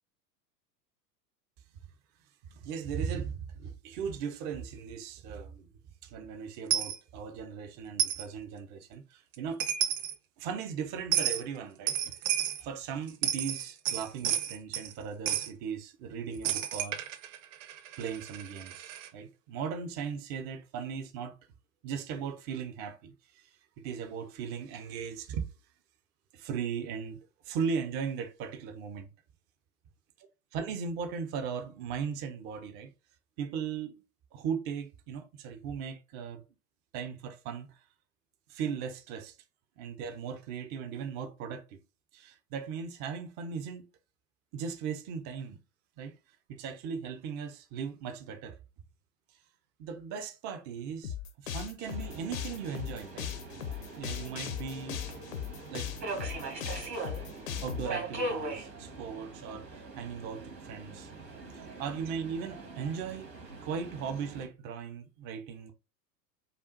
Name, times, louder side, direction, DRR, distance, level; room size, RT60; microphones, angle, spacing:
voice 1, 2.5-5.7 6.0-9.6 10.4-12.1 12.6-17.0 18.0-21.4 21.8-23.5 23.8-25.4 26.3-27.2 27.4-29.1 30.5-32.9 33.4-34.0 34.3-36.4 36.9-37.8 38.5-39.4 39.8-41.8 42.1-43.9 44.5-45.6 46.0-46.2 46.5-48.6 49.8-51.2 51.4-53.3 53.9-55.0 55.7-55.9 57.6-61.1 61.5-63.3 63.6-65.7, right 6 dB, 20° right, 0.4 m, -38 dB
Coin (dropping), 6.7-7.0 8.0-8.2 9.3-9.4 9.6-10.1 11.1-11.4 11.9-12.6 13.1-14.9 15.3-15.5 16.4-19.1, right 10 dB, 50° right, 0.8 m, -31 dB
sound 1, 51.0-57.9, left 9 dB, 55° left, 0.9 m, -38 dB
Subway metro underground, 51.8-64.5, right 2 dB, 80° right, 1.9 m, -41 dB
5.1 x 2.3 x 3.9 m
figure-of-eight pair, 90°, 50 cm